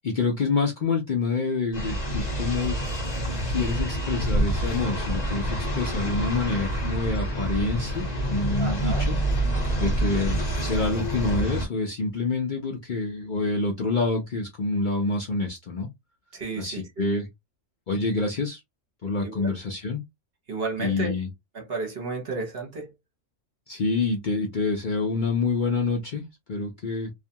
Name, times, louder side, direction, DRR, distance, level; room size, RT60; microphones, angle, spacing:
voice 1, 0.0-2.8 3.5-9.2 9.8-15.9 16.6-17.3 17.9-18.6 19.0-20.0 20.8-21.3 23.7-27.1, left 3 dB, 50° left, 0.6 m, -27 dB
sound 1, 1.7-11.7, right 1 dB, 35° left, 1.0 m, -27 dB
voice 2, 8.6-9.1 16.3-17.0 19.2-19.6 20.5-21.1 21.5-22.9, right 4 dB, 50° right, 1.0 m, -33 dB
2.5 x 2.3 x 2.7 m
omnidirectional pair, 1.4 m